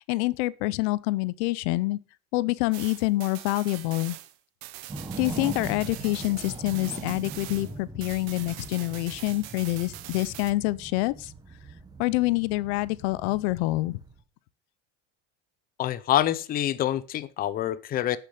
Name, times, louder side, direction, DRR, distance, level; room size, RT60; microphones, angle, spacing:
voice 1, 0.0-2.0 2.3-4.2 5.2-11.3 12.0-14.0, left 19 dB, 85° left, 0.6 m, -27 dB
sound 1, 2.7-7.8 8.0-10.5, right 16 dB, 75° right, 1.0 m, -43 dB
sound 2, 4.9-14.2, right 3 dB, 10° right, 1.1 m, -41 dB
voice 2, 15.8-18.2, left 12 dB, 30° left, 0.5 m, -26 dB
8.5 x 6.9 x 5.5 m
cardioid pair, 150°, 32 cm